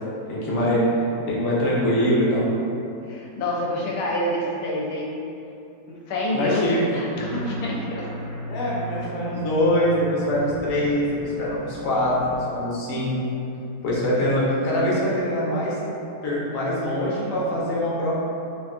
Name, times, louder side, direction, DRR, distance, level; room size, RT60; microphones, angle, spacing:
voice 1, 0.3-0.8 1.3-2.5 6.3-6.9 8.5-13.2 13.8-15.7 16.2-18.2, left 1 dB, 65° left, -6 dB, 1.0 m, -23 dB
voice 2, 3.1-5.1 5.9-8.1, left 1 dB, 85° left, -3 dB, 1.1 m, -27 dB
sound 1, 7.1-12.4, equal, 60° right, 1.1 m, -36 dB
2.8 x 2.4 x 2.4 m, 2.7 s
omnidirectional pair, 1.7 m